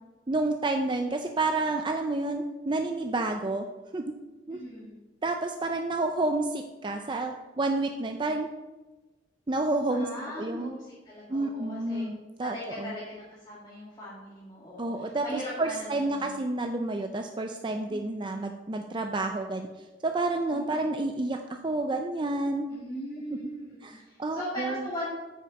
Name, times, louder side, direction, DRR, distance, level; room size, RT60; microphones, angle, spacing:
voice 1, 0.3-3.7 3.9-4.0 4.5-4.6 5.2-8.5 9.5-10.1 10.4-10.7 11.3-12.9 14.8-19.7 20.0-21.4 21.6-22.7 23.8-24.9, right 2 dB, 25° right, 4 dB, 0.5 m, -29 dB
voice 2, 4.6-5.0 9.9-12.1 12.4-16.4 17.9-18.2 20.5-20.9 22.7-25.1, equal, 25° left, -7 dB, 2.1 m, -39 dB
8.9 x 6.5 x 5.2 m, 1.2 s
head